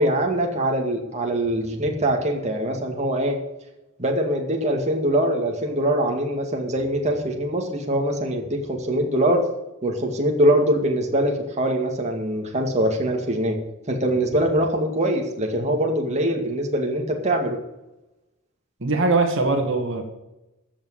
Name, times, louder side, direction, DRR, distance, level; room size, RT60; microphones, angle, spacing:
voice 1, 0.0-3.4 4.0-9.4 9.8-13.6 13.9-17.6, right 1 dB, 30° right, 1 dB, 2.1 m, -23 dB
voice 2, 18.8-20.0, right 3 dB, 60° right, 4 dB, 2.0 m, -21 dB
15.0 x 6.4 x 8.1 m, 0.96 s
head